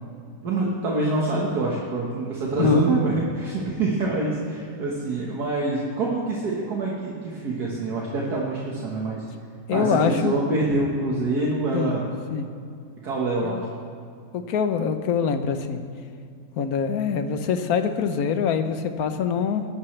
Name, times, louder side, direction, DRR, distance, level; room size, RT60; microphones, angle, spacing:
voice 1, 0.4-9.2 9.7-12.1 13.0-13.6, right 2 dB, 65° right, -3 dB, 2.0 m, -25 dB
voice 2, 9.7-10.3 11.7-12.0 12.3-12.5 13.4-13.6 14.3-15.8 16.6-19.6, left 6 dB, 60° left, 8 dB, 1.2 m, -24 dB
21.0 x 12.0 x 3.3 m, 2.4 s
omnidirectional pair, 1.9 m